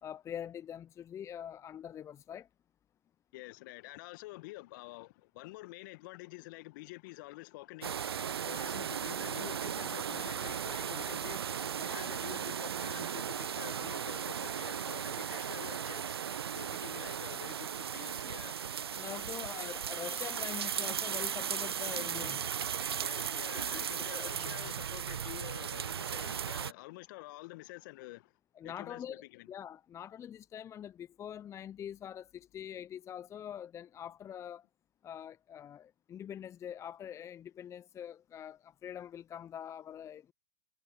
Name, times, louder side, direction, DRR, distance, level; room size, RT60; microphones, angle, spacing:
voice 1, 0.0-2.5 18.9-22.4 23.3-23.4 23.7-23.8 24.1-24.5 28.6-34.7 35.0-40.3, left 9 dB, 20° left, 0.8 m, -44 dB
voice 2, 3.3-8.2 8.5-11.5 11.8-16.2 16.5-18.6 23.0-28.4 28.6-29.5, left 22 dB, 50° left, 1.9 m, -48 dB
sound 1, 7.8-26.7, right 8 dB, 80° right, 0.6 m, -36 dB
figure-of-eight pair, 105°, 13 cm